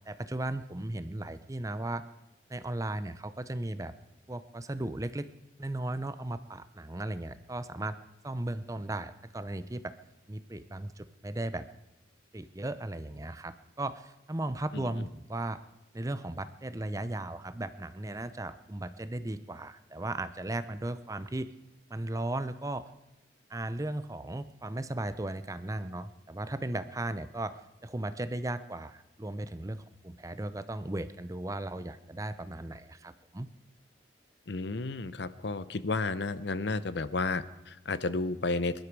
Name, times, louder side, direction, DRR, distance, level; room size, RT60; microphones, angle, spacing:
voice 1, 0.0-2.0 2.5-3.9 4.3-5.3 5.6-8.0 8.2-9.9 10.3-11.6 12.3-15.6 15.9-21.5 21.9-22.8 23.5-33.5, right 1 dB, 15° right, 12 dB, 0.6 m, -36 dB
voice 2, 34.5-38.7, left 3 dB, 65° left, 14 dB, 0.7 m, -32 dB
22.5 x 12.0 x 4.7 m, 0.98 s
head